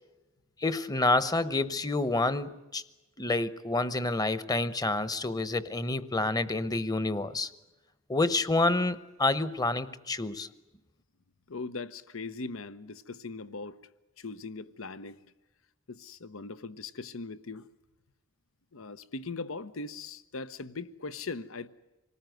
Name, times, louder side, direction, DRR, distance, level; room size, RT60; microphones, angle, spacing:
voice 1, 0.6-2.8 3.2-7.5 8.1-10.5, left 2 dB, 20° left, 0.9 m, -28 dB
voice 2, 11.5-13.8 14.2-15.2 15.9-17.7 18.7-21.7, left 3 dB, 90° left, 0.9 m, -40 dB
26.5 x 19.5 x 9.2 m
head